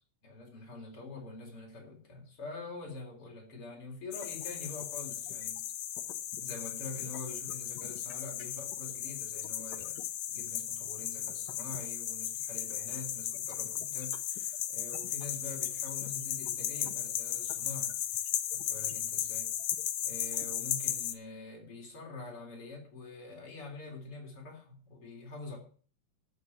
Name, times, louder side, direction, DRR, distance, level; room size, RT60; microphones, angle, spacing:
voice 1, 0.2-5.6 6.4-10.0 10.3-19.5 20.0-25.6, left 3 dB, 40° left, 0 dB, 4.5 m, -45 dB
sound 1, 4.1-21.1, left 11 dB, 75° left, 1.5 m, -36 dB
13.0 x 7.0 x 7.3 m, 0.42 s
omnidirectional pair, 4.1 m